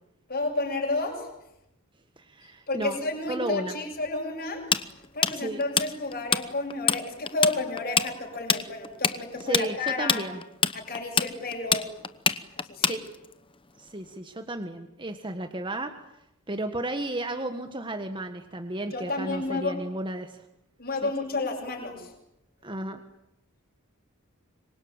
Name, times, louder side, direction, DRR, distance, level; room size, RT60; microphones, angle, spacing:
voice 1, 0.3-1.3 2.7-4.6 5.1-10.2 10.7-11.8 12.6-13.0 18.9-19.7 20.8-22.1, left 2 dB, 45° left, 1 dB, 7.7 m, -31 dB
voice 2, 2.2-3.0 3.3-3.7 5.3-5.6 9.4-10.4 12.9-13.0 13.8-15.9 16.5-20.4 21.0-21.1 22.6-23.0, right 2 dB, 20° right, 6 dB, 1.6 m, -33 dB
Tools, 4.7-6.4 6.7-7.0 7.3-13.3, left 6 dB, 25° left, 0.9 m, -24 dB
26.5 x 24.0 x 9.0 m, 0.83 s
head